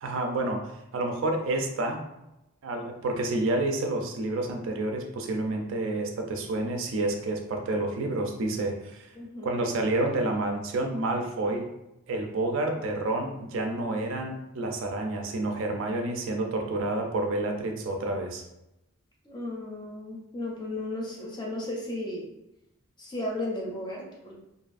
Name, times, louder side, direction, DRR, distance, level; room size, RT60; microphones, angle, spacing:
voice 1, 0.0-2.0 2.6-9.1 9.4-11.7 12.1-18.4, right 2 dB, 60° right, 3 dB, 0.4 m, -29 dB
voice 2, 9.1-9.5 19.2-22.3 23.0-24.4, left 1 dB, 20° left, -3 dB, 0.5 m, -35 dB
2.5 x 2.4 x 2.4 m, 0.89 s
head